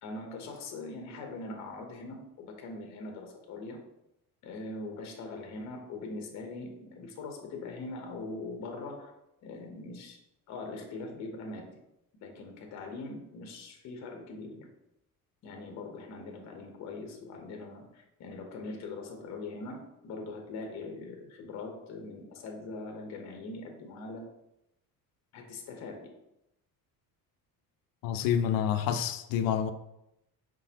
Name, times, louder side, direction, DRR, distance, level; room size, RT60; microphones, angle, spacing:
voice 1, 0.0-3.8 4.4-9.1 9.4-10.2 10.5-11.8 12.1-14.7 15.4-24.3 25.3-26.2, left 3 dB, 50° left, 0.8 m, -42 dB
voice 2, 28.0-29.7, left 9 dB, 65° left, 0.5 m, -28 dB
4.9 x 3.8 x 2.8 m
cardioid pair, 170°, 36 cm